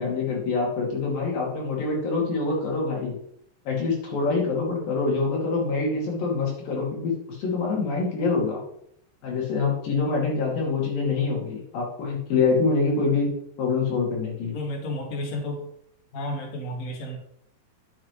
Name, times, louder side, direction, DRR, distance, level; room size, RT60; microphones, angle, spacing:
voice 1, 0.0-3.2 3.7-8.6 9.2-13.3 13.6-14.5, left 4 dB, 90° left, -3 dB, 4.3 m, -25 dB
voice 2, 14.5-15.6 16.1-17.2, left 1 dB, 30° left, 0 dB, 1.7 m, -31 dB
9.9 x 7.7 x 3.2 m, 0.71 s
omnidirectional pair, 3.9 m